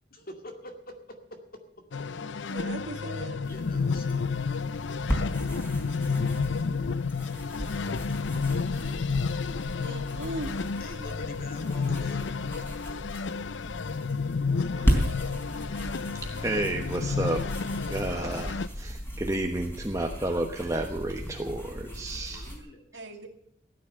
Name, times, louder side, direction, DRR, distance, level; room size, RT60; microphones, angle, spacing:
voice 1, 0.1-1.6 3.5-4.3 10.8-12.3 21.2-22.9, left 1 dB, 55° left, 5 dB, 2.3 m, -46 dB
sound 1, 1.9-18.7, left 4 dB, 80° left, 0.6 m, -31 dB
voice 2, 2.5-3.4 9.8-10.7 15.1-15.2 22.9-23.3, right 1 dB, 80° right, 4 dB, 2.4 m, -38 dB
sound 2, 3.4-22.6, equal, 15° left, 3.8 m, -35 dB
voice 3, 14.8-15.1 16.2-17.4 17.8-22.5, right 1 dB, 15° right, 3 dB, 1.1 m, -31 dB
16.0 x 9.6 x 6.6 m, 0.72 s
head